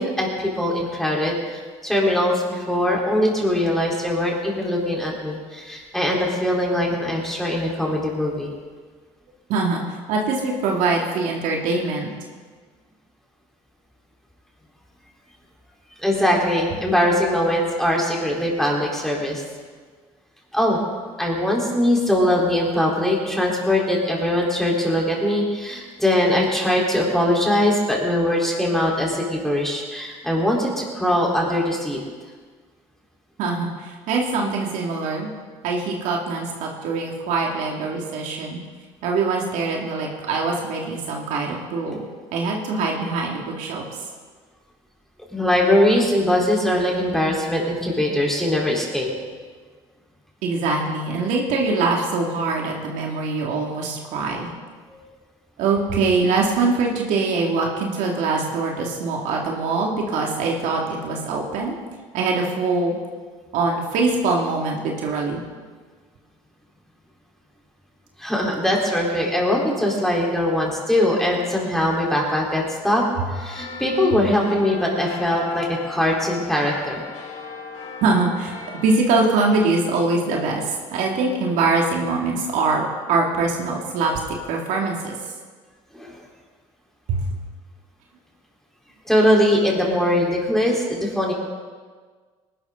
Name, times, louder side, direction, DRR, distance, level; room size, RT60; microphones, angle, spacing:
voice 1, 0.0-8.5 16.0-19.4 20.5-20.8 21.2-32.0 45.3-49.1 54.9-55.0 68.2-73.0 73.3-77.0 85.9-86.2 89.1-91.3, left 1 dB, 5° left, -3 dB, 4.1 m, -21 dB
voice 2, 9.5-9.8 10.1-12.1 33.4-35.3 35.6-38.6 39.0-42.0 42.3-43.8 50.4-54.5 55.6-61.8 62.1-62.9 63.5-65.4 78.0-78.5 78.8-84.1 84.5-85.1 87.1-87.2, right 3 dB, 75° right, 0 dB, 2.6 m, -23 dB
sound 1, 73.3-78.9, left 5 dB, 70° left, 4.2 m, -37 dB
19.0 x 12.0 x 4.0 m, 1.5 s
supercardioid pair, 85°, 13 cm